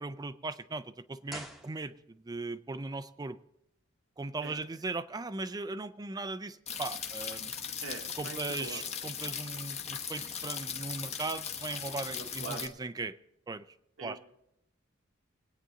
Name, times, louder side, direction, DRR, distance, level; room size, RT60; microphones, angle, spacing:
voice 1, 0.0-3.4 4.2-7.5 8.2-13.1 13.5-13.6 14.0-14.2, right 3 dB, 20° right, 13 dB, 0.4 m, -38 dB
sound 1, 1.3-2.4 2.6-2.7, equal, ahead, 1.0 m, -47 dB
sound 2, 6.7-12.7, left 6 dB, 30° left, 1.0 m, -38 dB
voice 2, 7.8-8.8 12.1-12.7 14.0-14.2, right 3 dB, 70° right, 4 dB, 1.2 m, -43 dB
21.0 x 9.1 x 3.8 m, 0.79 s
head